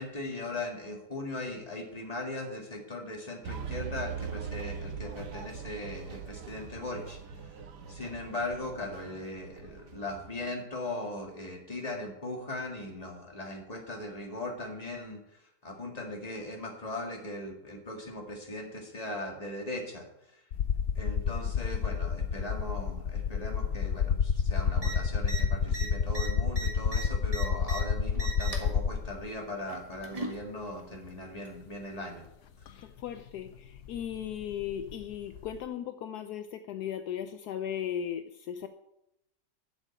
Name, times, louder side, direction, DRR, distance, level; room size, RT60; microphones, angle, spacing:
voice 1, 0.0-7.6 7.9-20.1 20.3-20.4 21.0-32.2, left 1 dB, 25° left, 1 dB, 2.0 m, -39 dB
sound 1, 3.4-10.4, right 6 dB, 80° right, 1.6 m, -41 dB
sound 2, 20.5-29.3 30.4-30.5 32.7-32.8 33.0-35.6, left 6 dB, 60° left, 0.9 m, -29 dB
sound 3, 24.8-24.9 25.2-25.4 25.7-27.8 28.1-28.7 29.7-30.4 31.4-31.5, right 2 dB, 20° right, 1.6 m, -38 dB
voice 2, 32.7-38.7, left 9 dB, 75° left, 9 dB, 1.1 m, -37 dB
7.7 x 7.3 x 8.4 m, 0.84 s
omnidirectional pair, 1.8 m